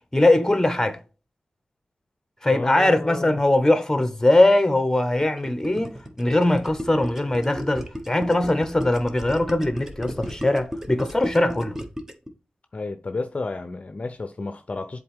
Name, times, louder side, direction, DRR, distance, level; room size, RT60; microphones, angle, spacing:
voice 1, 0.1-1.0 2.4-11.8, left 1 dB, 15° left, 1.1 m, -21 dB
voice 2, 2.5-3.4 12.7-15.0, left 3 dB, 45° left, 0.6 m, -32 dB
Gurgling, 5.2-12.3, equal, 15° right, 1.2 m, -34 dB
7.7 x 4.0 x 3.6 m
wide cardioid pair, 75°, 3 cm